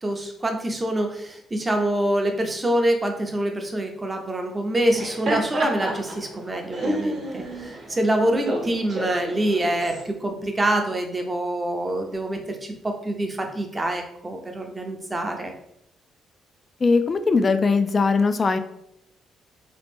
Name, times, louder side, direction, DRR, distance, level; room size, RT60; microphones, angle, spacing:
voice 1, 0.0-15.5, right 1 dB, 20° right, 4 dB, 0.6 m, -25 dB
Laughter, 4.8-10.0, right 1 dB, 50° right, 1.0 m, -30 dB
voice 2, 16.8-18.6, left 4 dB, 35° left, 9 dB, 0.3 m, -20 dB
2.9 x 2.4 x 3.5 m, 0.75 s
cardioid pair, 90°, 0 cm